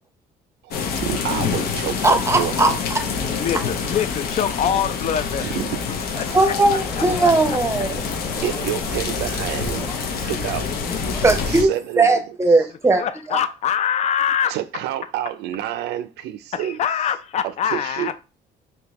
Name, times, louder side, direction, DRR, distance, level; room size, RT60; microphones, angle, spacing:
sound 1, 0.7-11.6, left 5 dB, 65° left, 0.8 m, -26 dB
voice 1, 1.0-2.8 4.7-5.1 5.4-5.8 8.4-10.7 11.5-12.2 12.5-12.6 14.5-16.8 17.4-18.1, right 12 dB, 80° right, 0.4 m, -29 dB
voice 2, 2.0-3.0 6.3-8.0 11.2-11.7 12.0-13.0 13.3-13.4, right 2 dB, 15° right, 0.7 m, -18 dB
voice 3, 3.4-5.4 6.4-6.5 7.0-7.6 13.0-14.5 16.5-18.1, left 9 dB, 40° left, 0.4 m, -24 dB
sound 2, 6.5-12.2, equal, 10° left, 1.1 m, -40 dB
3.4 x 2.8 x 3.0 m
cardioid pair, 110°, 17 cm